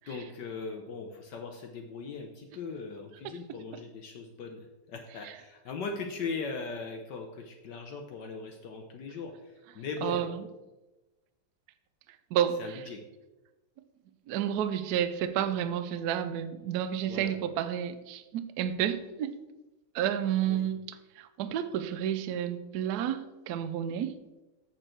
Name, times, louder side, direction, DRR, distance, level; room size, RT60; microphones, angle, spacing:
voice 1, 0.1-10.2 12.6-13.0 17.0-17.3 20.5-20.7, left 4 dB, 65° left, 4 dB, 1.2 m, -39 dB
voice 2, 10.0-10.3 12.3-12.8 14.3-19.4 19.9-24.2, right 10 dB, 80° right, 11 dB, 0.8 m, -30 dB
7.7 x 6.7 x 4.4 m, 1.1 s
omnidirectional pair, 2.4 m